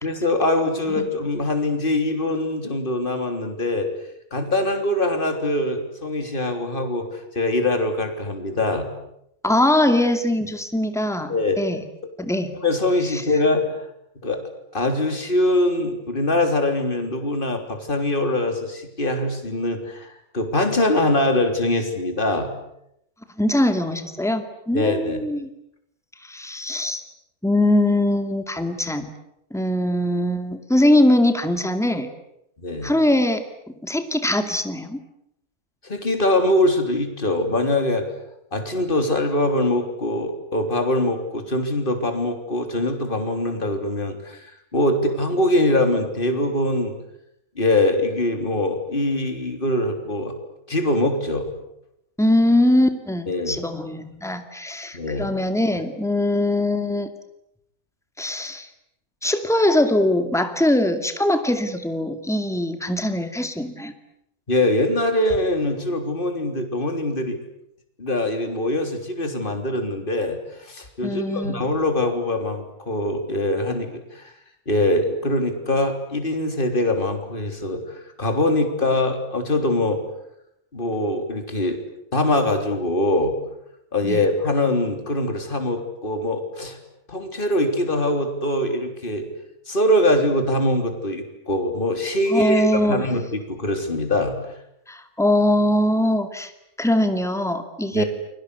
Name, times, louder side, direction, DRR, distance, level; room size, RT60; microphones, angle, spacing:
voice 1, 0.0-3.9 4.3-7.1 7.4-8.9 11.3-11.6 12.6-13.7 14.2-14.4 14.7-22.5 24.7-25.3 32.6-32.9 35.8-38.1 38.5-44.5 44.7-47.0 47.6-50.3 50.7-51.5 53.3-53.6 54.9-55.3 64.5-67.4 68.0-74.2 74.7-77.8 78.2-80.0 80.7-81.8 82.1-83.4 83.9-86.8 87.1-89.3 89.7-94.4 97.9-98.0, left 1 dB, 35° left, 5 dB, 3.8 m, -23 dB
voice 2, 9.4-11.8 12.2-12.5 13.1-13.2 23.4-25.5 26.3-27.0 27.4-29.1 29.5-32.1 32.8-33.4 33.8-35.0 52.2-57.1 58.2-58.7 59.2-63.9 71.0-71.6 84.0-84.2 92.3-93.1 94.9-96.5 96.8-98.0, left 1 dB, ahead, 7 dB, 2.3 m, -21 dB
30.0 x 23.5 x 8.3 m, 0.79 s
omnidirectional pair, 1.5 m